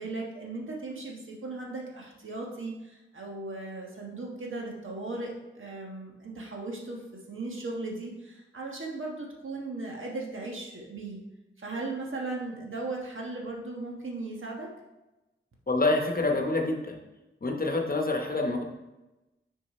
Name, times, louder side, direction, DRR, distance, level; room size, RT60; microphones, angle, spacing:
voice 1, 0.0-11.2 11.6-14.7, right 2 dB, 70° right, -1 dB, 1.4 m, -37 dB
voice 2, 15.7-17.0 17.4-18.6, left 2 dB, 45° left, 2 dB, 1.0 m, -27 dB
6.3 x 4.4 x 4.3 m, 1.0 s
wide cardioid pair, 80°, 21 cm